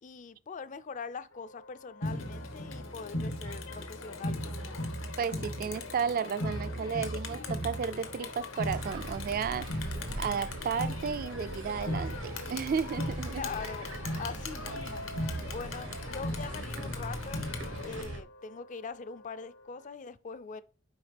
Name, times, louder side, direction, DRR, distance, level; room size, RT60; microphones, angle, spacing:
voice 1, 0.0-4.7 13.3-15.1 15.5-17.4 17.8-20.6, left 5 dB, 40° left, 0.4 m, -42 dB
Wind instrument woodwind instrument, 1.3-19.9, left 2 dB, 65° left, 1.3 m, -55 dB
Crowd, 2.0-18.0, left 1 dB, 85° left, 1.2 m, -37 dB
voice 2, 5.2-9.7 10.2-13.4, right 6 dB, 45° right, 0.3 m, -33 dB
sound 1, 8.6-18.2, right 2 dB, 80° right, 0.9 m, -42 dB
7.1 x 4.8 x 3.3 m
head